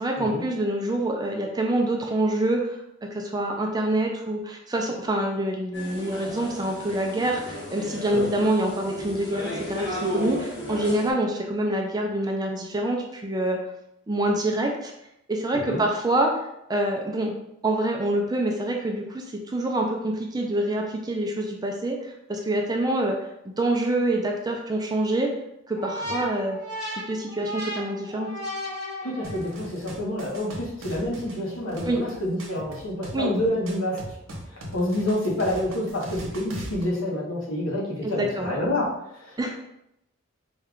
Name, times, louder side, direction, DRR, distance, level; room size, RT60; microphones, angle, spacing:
voice 1, 0.0-13.6 14.1-14.9 15.3-16.3 16.7-17.3 17.6-23.2 23.4-25.3 25.7-26.6 26.9-28.3 31.8-32.0 33.1-33.3 38.0-38.5 39.4-39.6, right 1 dB, 20° right, 1 dB, 0.4 m, -26 dB
sound 1, 5.7-11.1, equal, 55° left, 1.1 m, -34 dB
sound 2, 25.7-29.6, equal, 35° left, 1.3 m, -35 dB
voice 2, 29.0-34.2 34.5-38.9 39.1-39.4, left 1 dB, 75° left, -3 dB, 1.2 m, -28 dB
sound 3, 29.2-36.8, equal, 75° right, 0.9 m, -39 dB
4.3 x 2.4 x 3.6 m, 0.82 s
head